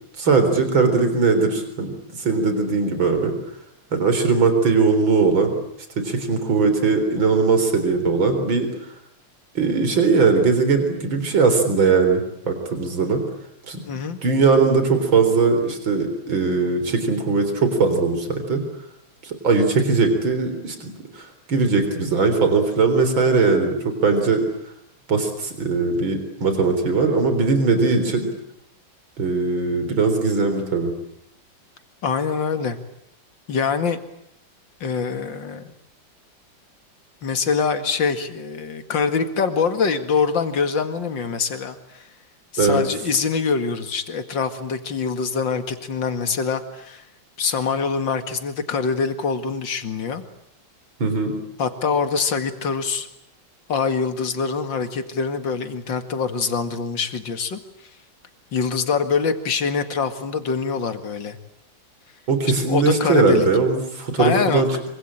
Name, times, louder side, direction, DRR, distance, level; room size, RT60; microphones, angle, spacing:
voice 1, 0.2-1.9 2.2-3.3 3.9-5.6 6.0-8.7 9.5-13.2 13.7-13.8 14.2-18.6 19.2-24.4 25.1-28.3 29.2-30.9 42.6-42.8 51.0-51.3 62.3-64.9, right 4 dB, 85° right, 7 dB, 4.7 m, -20 dB
voice 2, 13.9-14.2 32.0-32.8 33.5-34.0 34.8-35.7 37.2-42.1 42.5-47.0 47.4-50.2 51.6-53.1 53.7-57.6 58.5-61.4 62.7-63.5 64.2-64.6, left 5 dB, 70° left, 9 dB, 2.7 m, -24 dB
26.0 x 25.0 x 8.8 m, 0.75 s
omnidirectional pair, 2.1 m